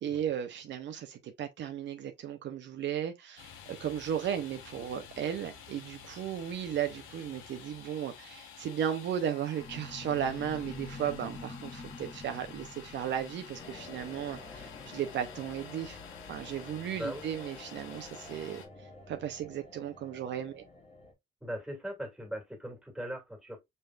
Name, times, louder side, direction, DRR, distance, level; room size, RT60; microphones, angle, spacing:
voice 1, 0.0-16.0 16.3-18.6 19.1-20.6, right 9 dB, 65° right, 0.6 m, -35 dB
Domestic sounds home sounds, 3.4-18.7, left 8 dB, 90° left, 0.9 m, -50 dB
sound 1, 9.6-15.5, left 3 dB, 15° left, 1.0 m, -47 dB
sound 2, 13.6-21.1, left 2 dB, 30° left, 1.5 m, -50 dB
voice 2, 16.9-17.2 21.4-23.6, equal, 5° right, 2.0 m, -39 dB
5.3 x 3.3 x 2.3 m
cardioid pair, 90°, 20 cm